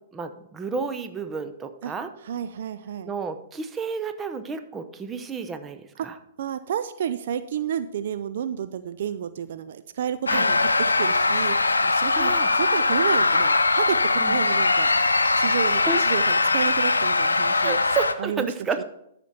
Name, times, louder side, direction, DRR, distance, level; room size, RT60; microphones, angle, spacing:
voice 1, 0.1-2.1 3.1-6.2 10.3-10.5 12.1-12.5 14.2-14.4 15.9-16.0 17.6-18.8, right 5 dB, 15° right, 8 dB, 0.8 m, -31 dB
voice 2, 2.2-3.1 6.0-6.1 6.4-14.9 15.4-17.8 18.2-18.5 18.8-18.9, right 9 dB, 60° right, 12 dB, 0.4 m, -31 dB
sound 1, 10.3-18.1, left 3 dB, 85° left, 0.6 m, -21 dB
13.5 x 5.1 x 4.3 m, 0.76 s
figure-of-eight pair, 115°, 0 cm